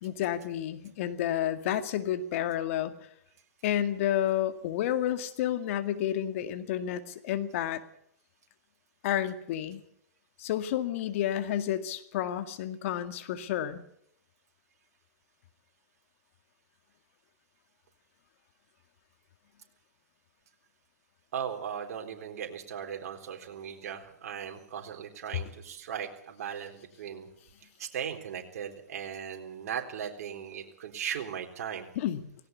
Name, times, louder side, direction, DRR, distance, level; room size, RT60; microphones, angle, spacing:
voice 1, 0.0-2.9 3.6-7.8 9.0-9.8 10.4-13.8 32.0-32.2, left 11 dB, 55° left, 9 dB, 2.1 m, -30 dB
voice 2, 21.3-27.3 27.8-31.9, right 8 dB, 60° right, 4 dB, 3.8 m, -38 dB
18.0 x 17.5 x 8.3 m, 0.69 s
hypercardioid pair, 120°, 9 cm